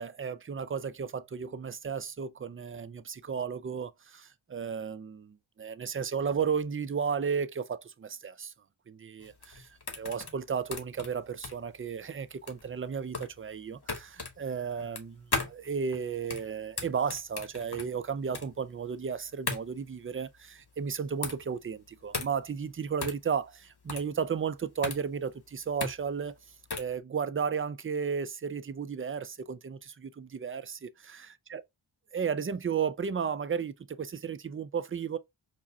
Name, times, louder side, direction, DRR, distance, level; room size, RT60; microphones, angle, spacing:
voice 1, 0.0-8.5 8.9-26.4 26.8-31.3 31.5-31.6 32.1-35.2, right 6 dB, 30° right, 0.3 m, -34 dB
sound 1, 9.2-27.0, left 3 dB, 50° left, 1.1 m, -38 dB
4.8 x 2.2 x 2.6 m
wide cardioid pair, 50°, 49 cm